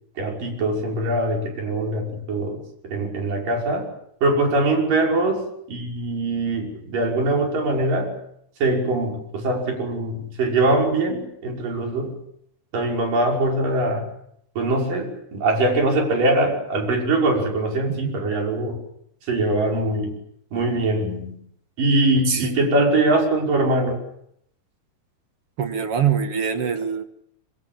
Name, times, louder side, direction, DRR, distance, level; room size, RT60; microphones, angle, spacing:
voice 1, 0.2-3.9 4.2-8.1 8.6-12.1 12.7-14.1 14.6-18.8 19.2-20.1 20.5-21.4 21.8-24.0, right 2 dB, 75° right, 1 dB, 7.5 m, -22 dB
voice 2, 22.3-22.7 25.6-27.0, right 7 dB, 50° right, 8 dB, 2.3 m, -24 dB
25.5 x 25.5 x 7.4 m, 0.72 s
omnidirectional pair, 3.9 m